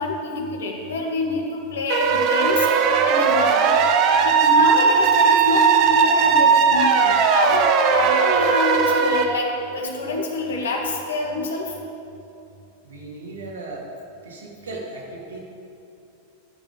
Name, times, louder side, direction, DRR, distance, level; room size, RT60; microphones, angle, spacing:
voice 1, 0.0-3.8 4.1-11.8, left 2 dB, 65° left, 1 dB, 1.8 m, -26 dB
sound 1, 1.9-9.3, right 6 dB, 40° right, 0.9 m, -18 dB
voice 2, 12.8-13.9 14.2-15.4, right 2 dB, 70° right, -3 dB, 2.7 m, -36 dB
12.0 x 7.2 x 7.3 m, 2.7 s
figure-of-eight pair, 90°, 0 cm